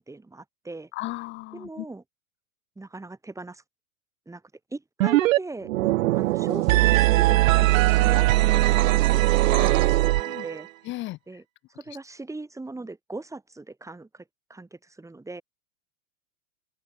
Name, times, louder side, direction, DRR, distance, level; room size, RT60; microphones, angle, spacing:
voice 1, 0.0-0.9 1.5-2.0 2.8-3.6 4.3-4.4 4.7-5.7 6.1-8.3 8.5-9.7 10.0-10.7 11.3-11.4 11.7-14.2 14.5-15.4, right 2 dB, 5° right, 5.5 m, -39 dB
voice 2, 0.9-1.9 9.5-10.0 10.3-10.5 10.8-11.2, left 19 dB, 30° left, 0.7 m, -35 dB
sound 1, 5.0-5.4 5.6-10.6, right 18 dB, 70° right, 0.5 m, -20 dB
open air
hypercardioid pair, 115°, 42 cm